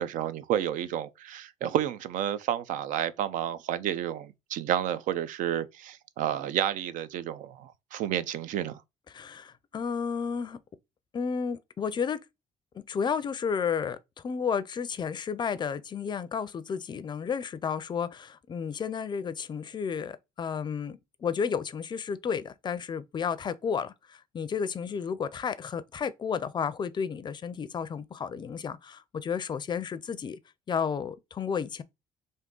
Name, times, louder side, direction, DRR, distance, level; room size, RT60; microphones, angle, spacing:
voice 1, 0.0-8.8, right 11 dB, 70° right, 0.4 m, -30 dB
voice 2, 9.1-10.6 11.1-12.2 12.7-30.4 30.7-31.8, left 6 dB, 35° left, 0.4 m, -32 dB
3.6 x 2.6 x 3.7 m
cardioid pair, 100°, 14 cm